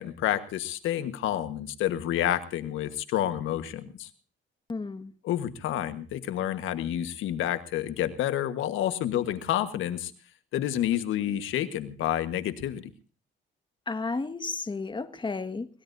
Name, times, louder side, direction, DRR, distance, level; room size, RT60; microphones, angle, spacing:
voice 1, 0.0-4.1 5.2-10.1 10.5-12.8, left 12 dB, 85° left, 10 dB, 1.4 m, -29 dB
voice 2, 4.7-5.1 13.9-15.7, left 3 dB, 25° left, 9 dB, 1.7 m, -32 dB
23.0 x 19.5 x 2.7 m, 0.37 s
cardioid pair, 90°, 20 cm